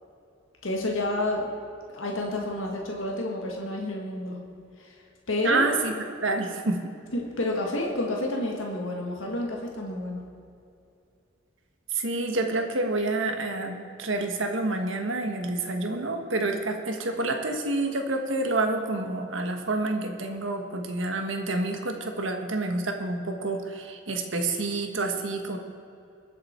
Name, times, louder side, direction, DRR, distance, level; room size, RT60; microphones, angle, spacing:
voice 1, 0.6-1.5 1.9-4.4 4.8-4.9 5.3-5.6 7.1-10.2, left 1 dB, 80° left, 0 dB, 1.8 m, -29 dB
voice 2, 5.4-5.9 6.2-6.8 11.9-25.6, right 2 dB, 70° right, 4 dB, 1.5 m, -28 dB
22.0 x 7.6 x 4.5 m, 2.6 s
head